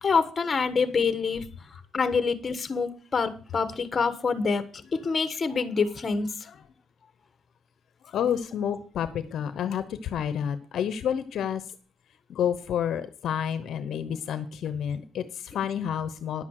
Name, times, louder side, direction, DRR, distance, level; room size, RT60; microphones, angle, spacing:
voice 1, 0.0-1.4 1.9-4.6 4.9-6.3, left 5 dB, 35° left, 1.3 m, -26 dB
voice 2, 8.0-11.6 12.3-16.4, left 9 dB, 70° left, 0.9 m, -29 dB
10.5 x 7.4 x 6.4 m
cardioid pair, 90°, 0 cm